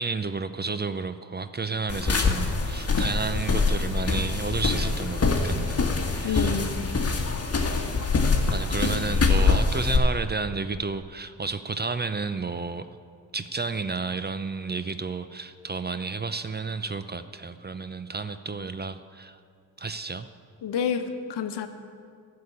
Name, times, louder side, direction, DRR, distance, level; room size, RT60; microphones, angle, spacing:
voice 1, 0.0-6.5 8.5-13.0 13.3-19.4 19.8-20.3, right 4 dB, 25° right, 11 dB, 0.6 m, -31 dB
sound 1, 1.9-10.0, left 4 dB, 35° left, 1.7 m, -24 dB
voice 2, 6.2-6.9 20.6-21.7, left 7 dB, 70° left, 8 dB, 1.1 m, -29 dB
12.5 x 6.8 x 8.5 m, 2.3 s
supercardioid pair, 50°, 43 cm